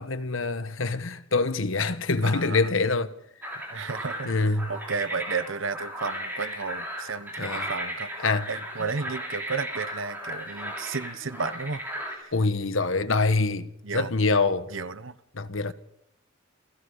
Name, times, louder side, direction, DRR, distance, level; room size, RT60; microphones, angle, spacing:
voice 1, 0.0-3.1 4.3-4.7 7.4-7.7 8.2-8.5 12.3-13.7 13.9-14.7 15.3-15.7, left 3 dB, 75° left, 1.3 m, -25 dB
voice 2, 2.2-2.7 3.7-8.1 8.5-11.8 13.8-14.1 14.7-15.2, right 4 dB, 70° right, 1.0 m, -33 dB
sound 1, 3.4-12.2, equal, 10° right, 7.2 m, -36 dB
28.5 x 17.0 x 5.6 m
head